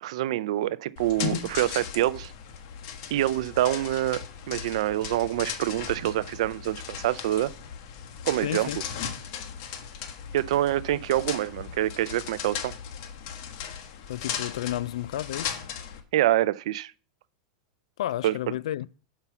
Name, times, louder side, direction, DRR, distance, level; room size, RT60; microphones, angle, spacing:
voice 1, 0.0-2.3 3.1-7.5 8.3-8.7 10.3-12.7 16.1-16.9 18.2-18.3, right 14 dB, 70° right, 0.4 m, -26 dB
sound 1, 1.0-16.0, left 8 dB, 50° left, 1.4 m, -37 dB
voice 2, 8.4-8.8 14.1-15.6 18.0-18.9, left 13 dB, 80° left, 0.4 m, -31 dB
5.9 x 5.6 x 6.9 m
supercardioid pair, 145°, 3 cm